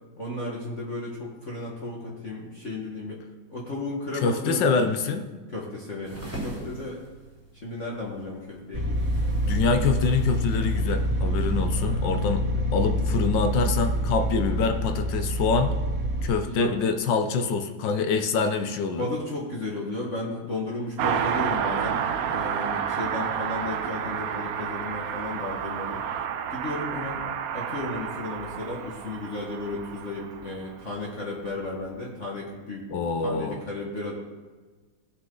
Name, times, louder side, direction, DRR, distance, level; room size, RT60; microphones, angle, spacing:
voice 1, 0.2-3.2 3.5-4.8 5.5-7.0 7.6-9.0 11.7-12.1 16.4-16.8 19.0-26.0 26.5-27.2 27.5-32.9 33.2-34.1, left 2 dB, 40° left, -3 dB, 1.6 m, -34 dB
voice 2, 4.2-5.3 9.4-15.8 16.2-19.1 32.9-33.6, left 4 dB, 70° left, 7 dB, 1.4 m, -25 dB
sound 1, 6.0-11.6, right 1 dB, 5° right, 2.7 m, -42 dB
sound 2, 8.7-16.3, equal, 45° right, 1.7 m, -26 dB
Car passing by, 21.0-30.9 31.2-31.3, right 8 dB, 80° right, 0.8 m, -30 dB
16.5 x 6.5 x 3.8 m, 1.4 s
omnidirectional pair, 2.2 m